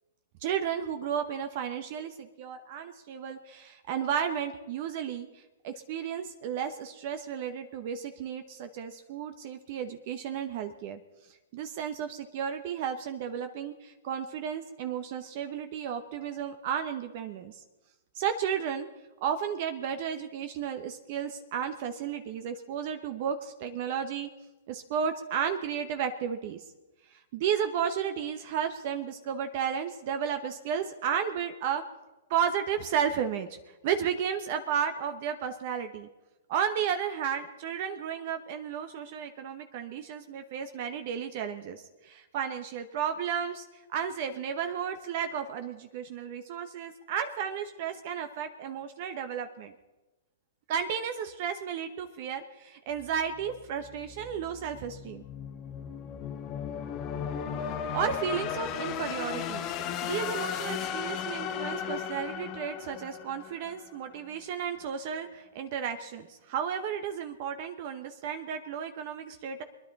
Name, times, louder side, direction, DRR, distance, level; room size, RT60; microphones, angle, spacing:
voice 1, 0.4-11.0 11.5-17.6 18.1-18.9 19.2-24.3 24.7-26.6 27.1-31.8 32.3-33.6 33.8-36.1 36.5-49.7 50.7-55.2 57.9-59.7 60.0-69.6, right 8 dB, 50° right, 7 dB, 1.0 m, -33 dB
sound 1, 53.0-64.0, left 8 dB, 35° left, 1.1 m, -36 dB
22.5 x 10.5 x 4.2 m, 1.1 s
hypercardioid pair, 120°, 0 cm